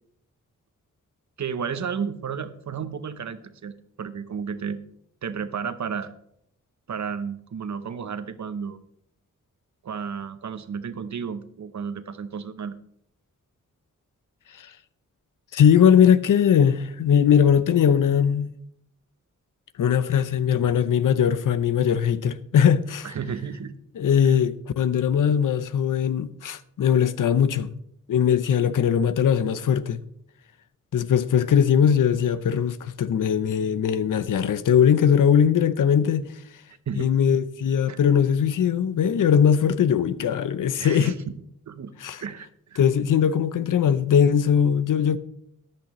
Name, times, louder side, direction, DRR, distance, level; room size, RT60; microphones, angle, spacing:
voice 1, 1.4-4.8 5.2-6.1 6.9-8.8 9.8-12.7 23.0-23.7 24.2-24.4 36.9-37.2 37.9-38.0 40.8-41.2 41.7-41.9 42.2-42.8, right 6 dB, 65° right, 0.9 m, -32 dB
voice 2, 15.5-18.5 19.8-23.1 24.0-27.7 28.1-30.0 30.9-36.3 37.0-41.1 42.0-42.2 42.8-45.2, left 8 dB, 80° left, 0.7 m, -20 dB
14.0 x 10.5 x 3.1 m
wide cardioid pair, 85°, 31 cm